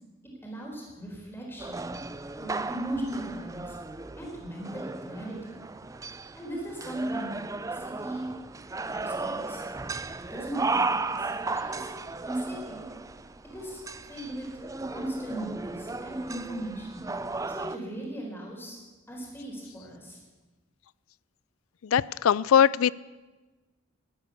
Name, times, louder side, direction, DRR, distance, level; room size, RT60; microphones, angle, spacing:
voice 1, 0.4-1.9 2.3-3.8 4.2-5.6 6.4-7.3 7.7-8.3 8.8-9.7 10.3-11.3 11.6-11.9 12.3-12.9 13.5-14.5 14.9-17.1 17.5-18.8 19.1-20.2, right 1 dB, 10° left, -2 dB, 4.2 m, -37 dB
sound 1, 1.6-17.8, right 3 dB, 15° right, 0.4 m, -35 dB
voice 2, 21.8-22.9, left 8 dB, 90° left, 22 dB, 0.4 m, -21 dB
13.0 x 12.0 x 8.4 m, 1.2 s
head